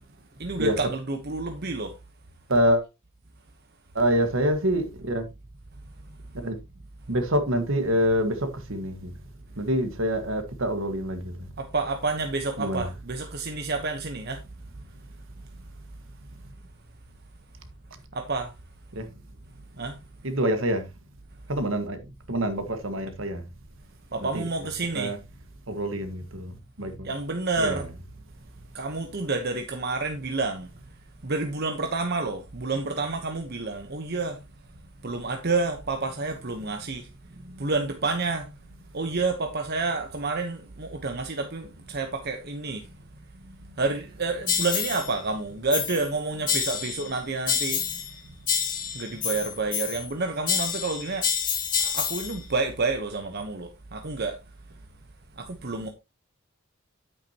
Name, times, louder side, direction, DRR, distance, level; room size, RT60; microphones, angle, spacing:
voice 1, 0.4-1.9 11.6-14.4 18.1-18.5 19.8-20.0 24.1-25.1 27.0-27.9 28.7-30.7 31.2-34.4 35.0-37.1 37.6-38.5 38.9-42.8 43.8-47.8 48.9-51.3 51.8-54.4 55.4-55.9, right 3 dB, 50° right, 1.0 m, -29 dB
voice 2, 2.5-2.9 3.9-5.3 6.4-6.6 7.1-9.1 9.5-11.5 12.6-12.9 18.9-19.0 20.2-20.8 21.5-22.0 22.3-23.4 24.3-24.4 24.9-25.2 25.7-27.1 27.6-27.8 37.4-37.6 48.2-48.3, equal, 65° right, 1.7 m, -26 dB
sound 1, 44.5-45.1 45.7-46.1 46.5-47.1 47.5-48.1 48.5-50.1 50.5-52.4, left 7 dB, 40° left, 2.2 m, -28 dB
9.9 x 8.7 x 2.9 m
head